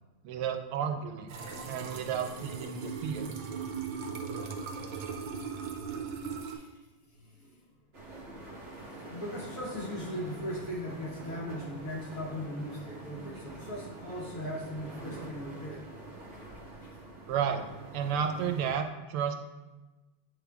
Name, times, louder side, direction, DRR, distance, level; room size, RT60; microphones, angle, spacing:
voice 1, 0.2-1.3 1.7-3.3 17.3-17.6 17.9-19.3, right 7 dB, 85° right, 6 dB, 1.5 m, -32 dB
sound 1, 1.3-6.6, right 5 dB, 65° right, 1.3 m, -38 dB
voice 2, 7.1-7.6 9.0-15.8 16.8-17.2, equal, 50° left, -4 dB, 1.1 m, -39 dB
sound 2, 7.9-18.8, right 2 dB, 45° right, 0.8 m, -45 dB
8.5 x 3.8 x 3.5 m, 1.1 s
omnidirectional pair, 2.4 m